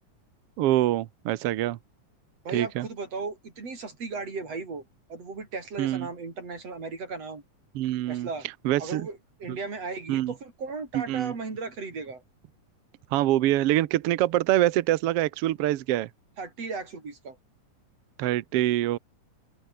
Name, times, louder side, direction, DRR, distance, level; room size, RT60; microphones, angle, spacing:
voice 1, 0.6-1.8 2.5-2.8 5.8-6.1 7.7-8.3 8.6-9.1 9.5-9.6 10.1-10.3 10.9-11.3 13.1-16.1 18.2-19.0, right 14 dB, 75° right, 1.4 m, -25 dB
voice 2, 2.4-4.8 5.1-7.4 8.1-8.5 8.8-12.2 16.4-17.4, right 4 dB, 50° right, 6.4 m, -36 dB
open air
omnidirectional pair, 3.7 m